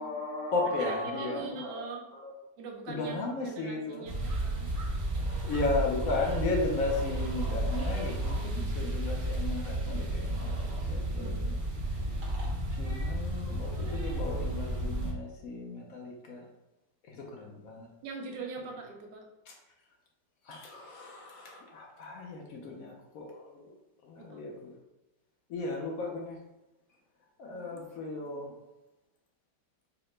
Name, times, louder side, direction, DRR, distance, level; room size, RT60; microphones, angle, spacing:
voice 1, 0.0-2.3 2.9-4.1 5.4-11.6 12.7-16.5 17.1-17.9 19.5-19.6 20.4-23.7 24.0-24.7 25.5-26.4 27.4-28.5, left 3 dB, 65° left, 0 dB, 0.9 m, -35 dB
voice 2, 0.9-2.1 2.6-4.7 8.2-8.7 11.1-11.5 18.0-19.2 24.2-24.4 27.5-27.8, right 4 dB, 80° right, 1 dB, 1.3 m, -43 dB
sound 1, 4.1-15.1, right 1 dB, 55° right, 0.5 m, -32 dB
4.7 x 2.1 x 3.1 m, 0.98 s
omnidirectional pair, 1.8 m